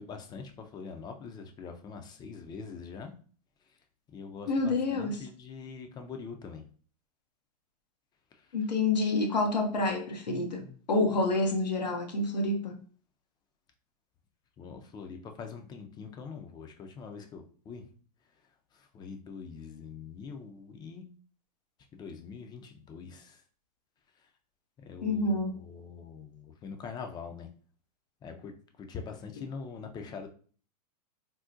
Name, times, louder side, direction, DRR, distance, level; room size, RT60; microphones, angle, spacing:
voice 1, 0.0-3.1 4.1-6.6 14.6-17.9 18.7-21.1 21.9-23.4 24.9-27.5 28.2-28.5 28.8-30.3, left 5 dB, 20° left, 0.4 m, -43 dB
voice 2, 4.5-5.3 8.5-12.8 25.0-25.5, left 2 dB, 90° left, 0.7 m, -28 dB
3.7 x 2.1 x 2.6 m
hypercardioid pair, 110°, 21 cm